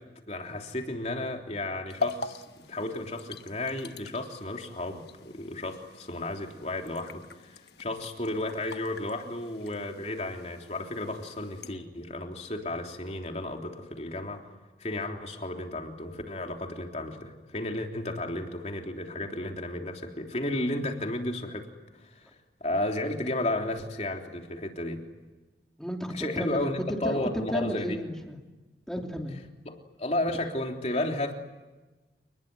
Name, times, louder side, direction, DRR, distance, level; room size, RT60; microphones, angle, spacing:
voice 1, 0.0-14.4 14.8-22.2 22.6-25.0 26.1-27.9 29.6-31.3, left 1 dB, 40° left, 2 dB, 3.4 m, -33 dB
sound 1, 1.9-11.8, left 4 dB, 65° left, 1.2 m, -42 dB
voice 2, 25.8-28.4 28.9-29.4, equal, 5° left, 2 dB, 3.0 m, -33 dB
29.5 x 20.5 x 9.6 m, 1.2 s
head